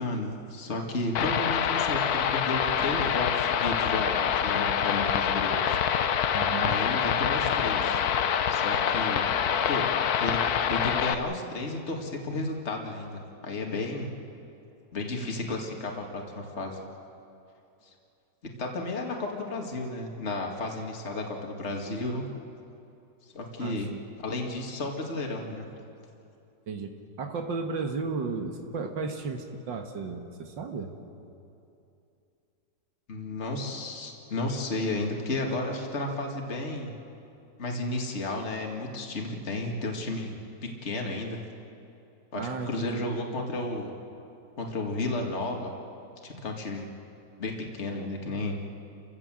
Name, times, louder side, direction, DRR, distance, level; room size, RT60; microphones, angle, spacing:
voice 1, 0.0-5.8 6.1-6.3 6.6-8.0 8.5-9.3 9.7-9.8 10.2-14.2 14.9-16.8 18.6-22.2 23.3-23.9 24.2-25.7 33.1-37.0 37.6-40.3 40.6-41.4 42.3-43.9 44.6-45.7 46.2-46.9 47.4-48.6, left 2 dB, 40° left, 1 dB, 2.3 m, -33 dB
sound 1, 1.1-11.1, left 8 dB, 65° left, 1.2 m, -26 dB
voice 2, 6.4-6.8 23.6-24.0 26.7-26.9 27.2-30.9 42.4-43.1, right 4 dB, 90° right, 4 dB, 2.2 m, -34 dB
30.0 x 15.5 x 7.6 m, 2.7 s
omnidirectional pair, 1.9 m